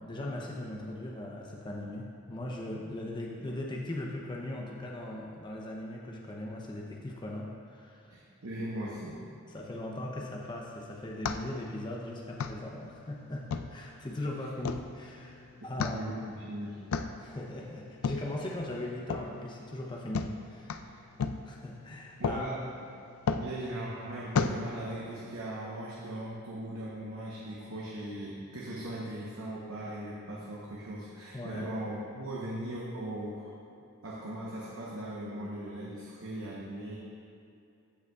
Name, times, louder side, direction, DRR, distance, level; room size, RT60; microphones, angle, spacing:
voice 1, 0.0-8.1 9.5-16.0 17.2-20.7 21.5-22.5 31.3-31.7, left 1 dB, 20° left, -2 dB, 0.6 m, -39 dB
voice 2, 8.1-9.2 15.6-16.8 20.8-20.9 22.2-22.6 23.4-33.5 34.0-37.0, right 1 dB, 65° right, -6 dB, 0.9 m, -39 dB
sound 1, 10.4-25.3, left 5 dB, 70° left, 0.3 m, -37 dB
15.0 x 5.5 x 2.3 m, 2.6 s
head